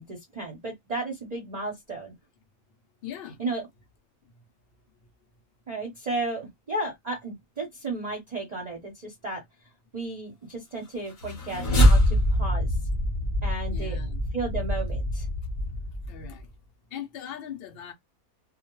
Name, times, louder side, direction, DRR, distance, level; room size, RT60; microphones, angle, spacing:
voice 1, 0.0-2.1 3.4-3.6 5.7-9.4 9.9-12.8 13.4-14.0 14.3-15.3, right 2 dB, 40° right, 0.6 m, -34 dB
voice 2, 3.0-3.4 4.2-4.3 13.7-14.3 16.1-16.5 16.9-17.9, left 7 dB, 60° left, 0.6 m, -40 dB
sound 1, 11.1-16.4, equal, 40° left, 0.8 m, -24 dB
2.2 x 2.2 x 2.9 m
omnidirectional pair, 1.5 m